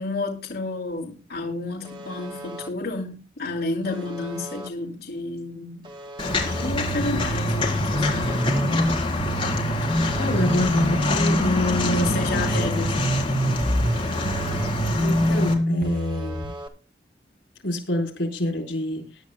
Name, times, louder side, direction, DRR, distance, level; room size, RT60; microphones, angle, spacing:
voice 1, 0.0-5.9 6.4-8.9 11.8-13.1, left 3 dB, 60° left, 2.7 m, -31 dB
Alarm, 1.8-2.7 3.8-4.7 5.8-6.7 7.8-8.7 9.8-10.7 11.8-12.7 13.8-14.7 15.8-16.7, right 1 dB, 25° right, 1.9 m, -39 dB
Walk footsteps, 6.2-15.5, left 2 dB, 30° left, 3.8 m, -27 dB
sound 1, 6.3-16.5, equal, 50° right, 2.2 m, -26 dB
voice 2, 9.8-12.2 15.0-16.5 17.6-19.1, left 1 dB, 85° left, 4.1 m, -26 dB
22.0 x 10.5 x 2.2 m
head